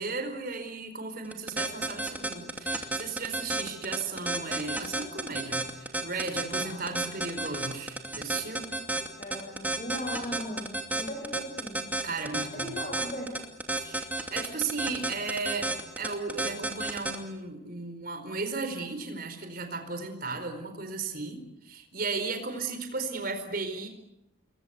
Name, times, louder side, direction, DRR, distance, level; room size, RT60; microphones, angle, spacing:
voice 1, 0.0-8.7 12.0-12.8 13.8-23.9, right 4 dB, 45° right, 7 dB, 4.5 m, -35 dB
sound 1, 1.2-17.2, right 2 dB, 10° right, 2.7 m, -31 dB
voice 2, 9.2-11.8 12.5-13.4, equal, 35° left, 1 dB, 6.1 m, -38 dB
29.5 x 22.0 x 8.1 m, 0.81 s
head